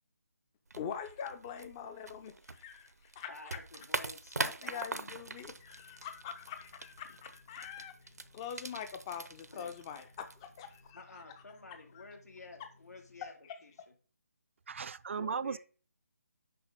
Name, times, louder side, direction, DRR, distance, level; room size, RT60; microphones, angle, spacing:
sound 1, 0.7-10.9, right 3 dB, 90° right, 0.8 m, -43 dB
voice 1, 0.8-3.3 4.4-11.2 11.9-12.0, left 8 dB, 20° left, 0.5 m, -44 dB
voice 2, 3.3-5.1 7.1-7.2 9.5-9.7 10.9-13.3 13.6-13.7 15.2-15.6, left 3 dB, 80° left, 2.5 m, -51 dB
sound 2, 5.1-13.3, left 3 dB, 65° left, 2.1 m, -64 dB
voice 3, 14.7-15.6, right 6 dB, 50° right, 0.4 m, -36 dB
6.8 x 5.0 x 5.2 m
figure-of-eight pair, 155°, 8 cm